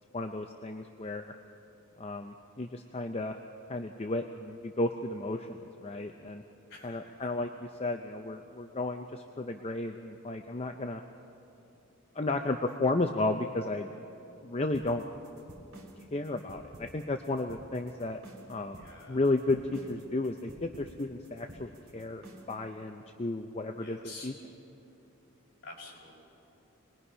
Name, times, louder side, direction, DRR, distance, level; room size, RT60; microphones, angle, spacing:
voice 1, 0.1-1.3 2.0-3.4 3.7-6.4 6.8-11.0 12.1-13.9 14.4-15.0 16.0-18.2 18.5-24.3, left 2 dB, 30° left, 5 dB, 0.6 m, -33 dB
voice 2, 6.7-7.4 18.7-19.2 23.8-24.3 25.6-26.1, left 3 dB, 50° left, -3 dB, 5.0 m, -48 dB
sound 1, 14.7-22.6, right 1 dB, 75° right, 3.0 m, -51 dB
27.0 x 20.5 x 5.6 m, 2.9 s
head